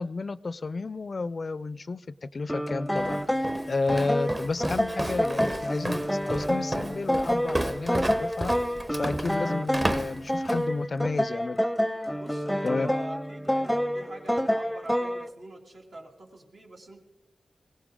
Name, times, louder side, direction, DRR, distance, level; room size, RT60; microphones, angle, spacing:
voice 1, 0.0-8.5 8.9-11.6 12.6-12.9, left 3 dB, 50° left, 17 dB, 0.4 m, -31 dB
sound 1, 2.5-15.3, equal, 5° left, 0.6 m, -28 dB
Walk footsteps, 3.0-10.7, right 1 dB, 25° right, 0.9 m, -33 dB
voice 2, 12.2-17.0, right 2 dB, 75° right, -1 dB, 2.6 m, -45 dB
21.0 x 17.0 x 3.7 m, 1.1 s
cardioid pair, 60°, 0 cm